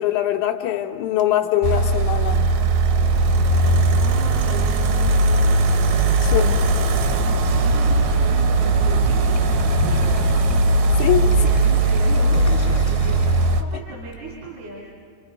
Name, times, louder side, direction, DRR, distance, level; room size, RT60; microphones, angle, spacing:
voice 1, 0.0-2.4 6.2-6.4 11.0-11.3, left 13 dB, 80° left, 0 dB, 1.7 m, -22 dB
sound 1, 1.6-13.6, right 3 dB, 65° right, 1.9 m, -19 dB
sound 2, 3.0-11.6, left 4 dB, 60° left, 0.4 m, -29 dB
voice 2, 4.0-6.0 6.2-6.9 7.2-10.7 11.3-14.8, right 2 dB, 80° right, -4 dB, 5.5 m, -37 dB
sound 3, 9.3-14.1, left 2 dB, 25° left, 0.7 m, -38 dB
29.0 x 27.0 x 5.3 m, 2.3 s
omnidirectional pair, 4.4 m